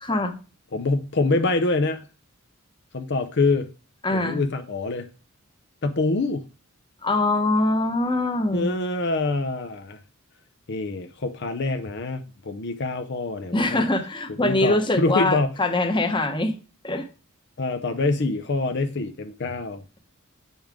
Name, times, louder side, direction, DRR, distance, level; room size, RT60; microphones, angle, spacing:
voice 1, 0.0-0.3 4.0-4.4 7.0-8.7 13.5-16.5 16.8-17.1, left 2 dB, 25° left, 1.1 m, -23 dB
voice 2, 0.7-2.0 2.9-3.7 4.1-5.1 5.8-6.5 8.5-10.0 10.7-13.8 14.3-15.6 17.6-19.8, left 3 dB, 55° left, 0.7 m, -25 dB
8.7 x 5.5 x 3.5 m
head